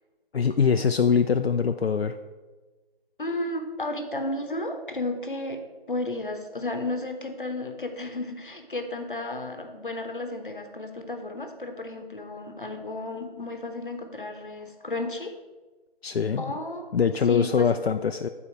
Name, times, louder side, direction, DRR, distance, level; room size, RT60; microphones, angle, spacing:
voice 1, 0.3-2.2 16.0-16.5 16.9-18.3, left 6 dB, 85° left, 7 dB, 0.5 m, -23 dB
voice 2, 3.2-5.6 5.9-15.3 16.4-16.9 17.3-17.7, left 2 dB, 55° left, 6 dB, 0.9 m, -33 dB
8.6 x 4.2 x 4.4 m, 1.3 s
figure-of-eight pair, 175°, 30 cm